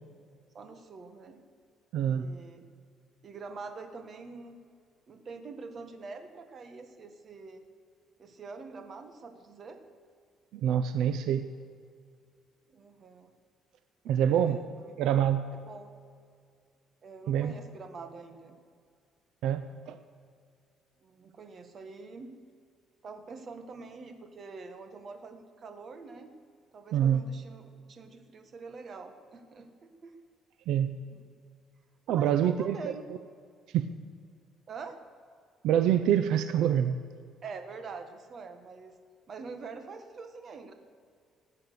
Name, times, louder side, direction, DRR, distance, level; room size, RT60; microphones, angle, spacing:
voice 1, 0.5-1.4 2.0-2.6 3.2-4.6 5.1-7.6 8.2-9.8 12.7-13.3 14.2-14.9 15.5-15.9 17.0-18.6 21.0-22.3 23.0-26.3 26.7-30.1 31.1-31.3 32.1-33.1 34.7-35.0 37.4-38.9 39.3-40.7, right 4 dB, 35° right, 7 dB, 1.5 m, -45 dB
voice 2, 1.9-2.3 10.5-11.5 14.1-14.6 15.0-15.5 17.3-17.5 19.4-20.0 26.9-27.2 30.7-31.0 32.1-32.9 33.7-33.9 35.6-36.9, right 9 dB, 80° right, 11 dB, 0.6 m, -26 dB
19.0 x 8.6 x 6.7 m, 2.2 s
cardioid pair, 150°, 0 cm